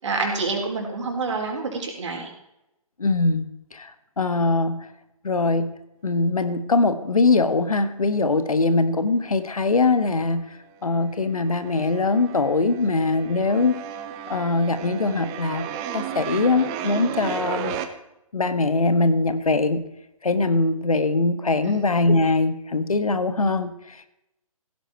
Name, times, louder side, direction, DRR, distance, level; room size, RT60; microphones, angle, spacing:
voice 1, 0.0-2.3 21.6-21.8, right 3 dB, 55° right, 1 dB, 4.4 m, -27 dB
voice 2, 3.0-4.9 5.2-5.8 6.0-13.8 14.3-15.6 15.9-17.8 18.3-19.9 20.2-24.1, left 3 dB, 70° left, 11 dB, 1.5 m, -22 dB
sound 1, 9.6-10.4 10.7-17.9, right 9 dB, 20° right, 0.9 m, -34 dB
16.0 x 10.0 x 4.5 m, 0.86 s
figure-of-eight pair, 135°, 19 cm